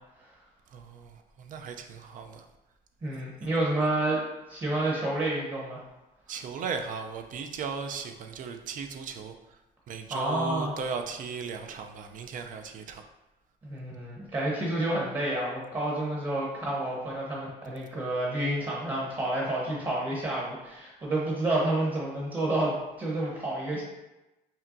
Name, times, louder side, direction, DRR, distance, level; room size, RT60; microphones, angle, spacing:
voice 1, 0.7-2.4 6.3-9.3 9.9-13.0, right 5 dB, 50° right, 6 dB, 0.5 m, -37 dB
voice 2, 3.0-4.2 4.5-5.8 10.1-10.7 13.6-23.8, right 1 dB, 30° right, -4 dB, 1.1 m, -29 dB
5.5 x 2.2 x 2.6 m, 1.0 s
cardioid pair, 110°, 17 cm